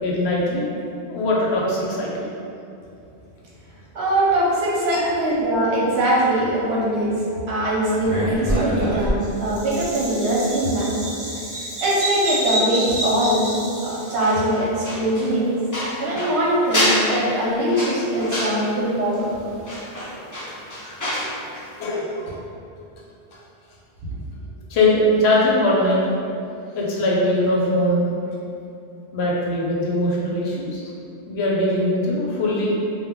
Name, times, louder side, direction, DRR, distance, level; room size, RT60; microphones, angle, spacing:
voice 1, 0.0-0.7 1.1-2.3 4.9-5.1 21.8-22.4 24.7-26.0 26.7-28.1 29.1-30.8 31.3-32.8, left 1 dB, 75° left, -4 dB, 0.8 m, -21 dB
voice 2, 3.9-7.2 7.5-10.9 11.3-13.5 13.8-15.5 16.0-19.3 20.8-21.0, right 1 dB, 75° right, -6 dB, 1.0 m, -22 dB
Bird vocalization bird call bird song, 8.0-14.3, equal, 40° right, 0.7 m, -27 dB
sound 1, 14.1-21.4 21.6-21.8, left 1 dB, 25° left, 0.4 m, -28 dB
2.2 x 2.2 x 3.5 m, 2.7 s
omnidirectional pair, 1.1 m